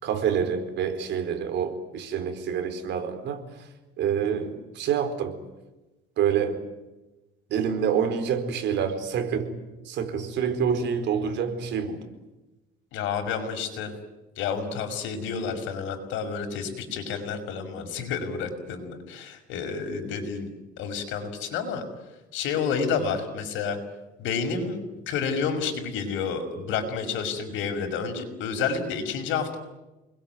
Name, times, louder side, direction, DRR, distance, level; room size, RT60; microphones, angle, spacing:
voice 1, 0.0-3.4 4.0-5.4 6.2-6.6 7.5-9.5 9.9-12.0, right 7 dB, 65° right, 7 dB, 4.6 m, -27 dB
voice 2, 12.9-13.9 14.4-21.8 22.3-23.8 24.2-29.6, left 6 dB, 75° left, 6 dB, 5.8 m, -30 dB
29.5 x 21.5 x 9.4 m, 1.1 s
cardioid pair, 130°, 20 cm